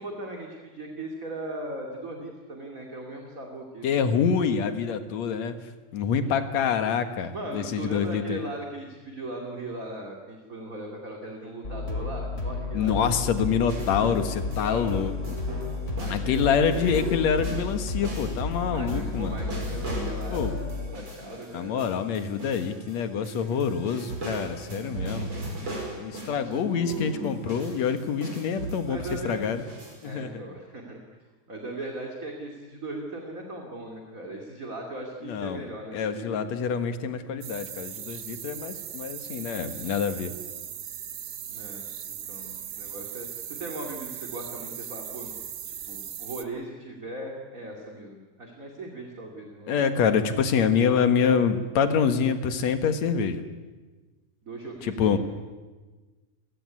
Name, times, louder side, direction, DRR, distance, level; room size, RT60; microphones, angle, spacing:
voice 1, 0.0-4.2 7.3-13.8 14.6-15.1 16.0-16.9 18.7-21.7 23.2-23.6 25.3-25.7 26.2-27.4 28.9-29.5 30.0-31.0 31.5-36.4 41.5-45.3 45.7-49.8 54.4-55.2, right 2 dB, 30° right, 1 dB, 2.8 m, -38 dB
voice 2, 3.8-5.5 5.9-8.5 12.7-15.4 16.1-19.4 20.3-20.5 21.5-25.3 26.0-29.6 30.0-30.4 35.2-35.6 35.9-40.3 49.7-53.4 54.8-55.2, left 7 dB, 70° left, 9 dB, 2.7 m, -26 dB
sound 1, 11.6-20.9, left 3 dB, 25° left, 2.5 m, -32 dB
sound 2, 13.7-14.9 15.2-23.0 23.2-26.5 26.9-30.0, right 1 dB, 45° right, 6.8 m, -38 dB
sound 3, 37.4-46.4, right 9 dB, 65° right, 1.0 m, -38 dB
29.5 x 16.0 x 9.7 m, 1.3 s
omnidirectional pair, 3.4 m